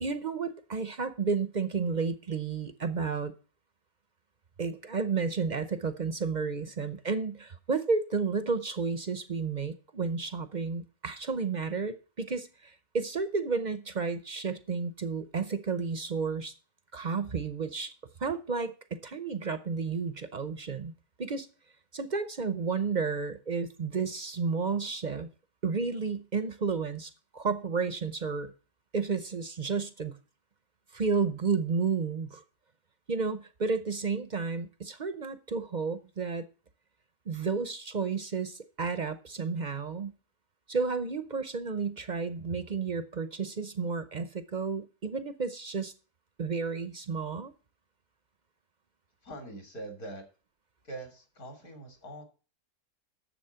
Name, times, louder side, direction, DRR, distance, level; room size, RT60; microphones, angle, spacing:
voice 1, 0.0-3.3 4.6-16.5 16.9-17.9 18.2-21.5 21.9-25.3 25.6-28.5 28.9-30.2 30.9-32.4 33.1-36.5 37.3-40.1 40.7-45.9 46.4-47.5, right 5 dB, 45° right, 0.6 m, -32 dB
voice 2, 49.2-50.2 50.8-52.2, right 1 dB, 65° left, 3.4 m, -43 dB
10.5 x 7.3 x 5.6 m
omnidirectional pair, 1.7 m